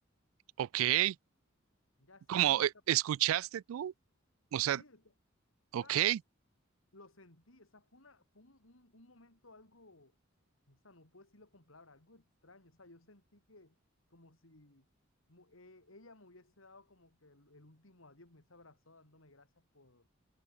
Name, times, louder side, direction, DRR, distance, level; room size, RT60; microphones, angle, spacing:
voice 1, 0.6-1.2 2.3-3.9 4.5-4.8 5.7-6.2, right 13 dB, 85° right, 0.3 m, -30 dB
voice 2, 2.0-2.7 4.7-5.1 5.8-6.1 6.9-10.2 10.7-13.8 14.1-14.9 15.3-20.1, left 2 dB, 75° left, 4.1 m, -60 dB
head